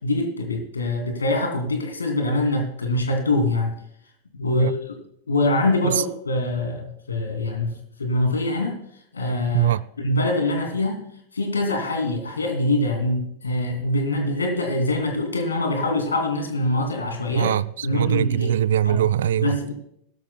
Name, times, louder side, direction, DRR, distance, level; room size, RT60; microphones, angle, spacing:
voice 1, 0.0-3.7 4.3-5.0 5.3-8.8 9.1-11.1 11.3-17.5 17.8-18.5 18.9-19.0 19.4-19.7, left 2 dB, 75° left, 2.6 m, -24 dB
voice 2, 17.3-19.6, right 10 dB, 60° right, 0.3 m, -22 dB
18.0 x 12.0 x 2.3 m
figure-of-eight pair, 90°, 0 cm